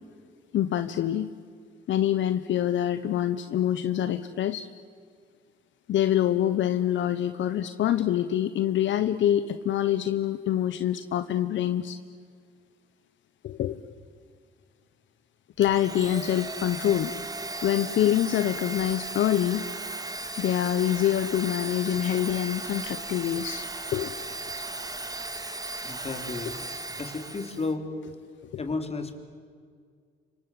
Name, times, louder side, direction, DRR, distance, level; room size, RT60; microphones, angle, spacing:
voice 1, 0.5-1.3 1.9-4.7 5.9-12.0 13.4-13.8 15.6-17.1 17.6-19.7 20.4-24.2 28.5-28.6, left 11 dB, 70° left, 11 dB, 1.1 m, -25 dB
Domestic sounds home sounds, 15.6-27.7, right 2 dB, 20° right, 2.1 m, -36 dB
voice 2, 25.8-26.7 27.0-27.9 28.6-29.2, left 3 dB, 30° left, 6 dB, 3.6 m, -33 dB
29.5 x 25.5 x 7.8 m, 2.1 s
cardioid pair, 90°, 20 cm